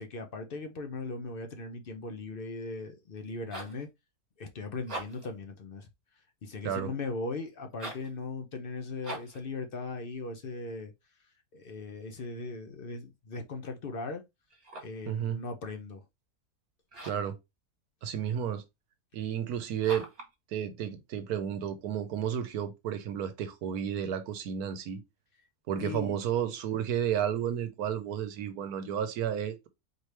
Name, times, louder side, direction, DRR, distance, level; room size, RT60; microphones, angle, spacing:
voice 1, 0.0-3.9 4.4-5.9 6.4-10.9 11.5-14.2 14.8-16.0 25.8-26.2, left 3 dB, 55° left, 0.6 m, -38 dB
sound 1, 3.2-3.8 4.8-5.4 7.7-8.1 9.0-9.5 14.5-15.1 16.9-17.3 19.8-20.3, right 2 dB, 40° right, 1.8 m, -42 dB
voice 2, 15.1-15.4 17.0-17.4 18.0-18.6 19.1-20.1 20.5-25.0 25.7-29.7, right 9 dB, 85° right, 1.2 m, -32 dB
4.4 x 3.2 x 3.2 m
omnidirectional pair, 1.6 m